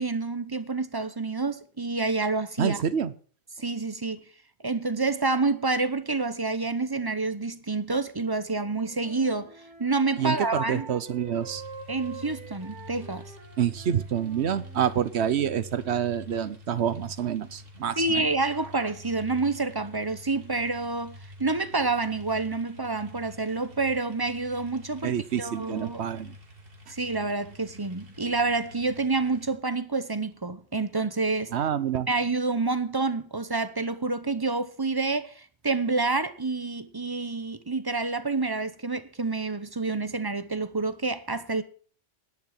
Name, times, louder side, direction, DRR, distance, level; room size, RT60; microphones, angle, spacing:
voice 1, 0.0-2.8 3.6-4.2 4.6-9.5 9.8-10.9 11.9-13.2 18.0-26.0 26.9-31.5 32.1-41.6, right 3 dB, 20° right, 0.8 m, -28 dB
voice 2, 2.6-3.1 10.2-11.6 13.6-18.3 25.0-26.3 31.5-32.1, right 9 dB, 70° right, 1.1 m, -27 dB
Wind instrument woodwind instrument, 8.6-15.1, right 4 dB, 85° right, 2.7 m, -46 dB
sound 1, 11.4-29.5, left 1 dB, 55° right, 2.2 m, -47 dB
11.0 x 9.6 x 5.8 m
omnidirectional pair, 1.2 m